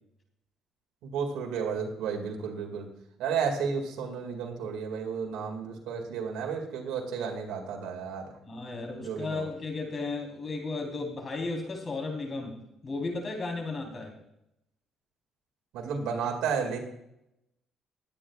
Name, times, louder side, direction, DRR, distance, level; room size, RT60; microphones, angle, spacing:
voice 1, 1.0-2.9 3.2-8.3 9.0-9.5 15.7-16.8, right 6 dB, 85° right, 1 dB, 2.1 m, -32 dB
voice 2, 8.4-12.6 12.8-14.1, left 3 dB, 35° left, 2 dB, 3.7 m, -34 dB
21.5 x 8.6 x 2.4 m, 0.81 s
cardioid pair, 100°, 0 cm